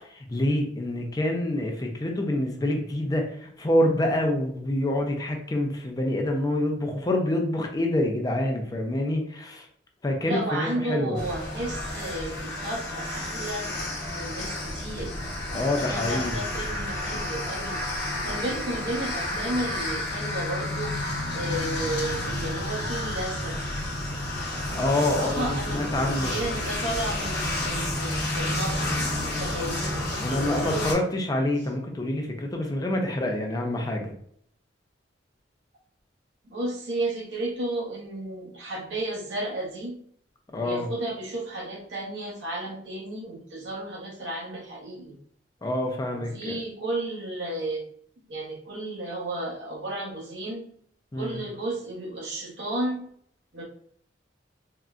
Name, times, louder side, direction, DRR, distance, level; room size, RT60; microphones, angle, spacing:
voice 1, 0.1-9.7 10.0-11.2 15.5-16.4 24.7-26.3 30.2-34.1 40.5-40.9 45.6-46.6 51.1-51.4, left 1 dB, 20° left, 2 dB, 0.4 m, -27 dB
voice 2, 10.2-13.7 14.1-15.1 15.5-21.0 21.3-23.6 25.0-30.9 36.4-40.0 40.6-45.2 46.1-47.8 48.3-50.7 51.1-53.1 53.5-53.6, right 1 dB, 70° right, -2 dB, 0.9 m, -33 dB
sound 1, 11.1-30.9, left 1 dB, 60° left, 0.8 m, -30 dB
3.7 x 2.2 x 2.3 m, 0.66 s
head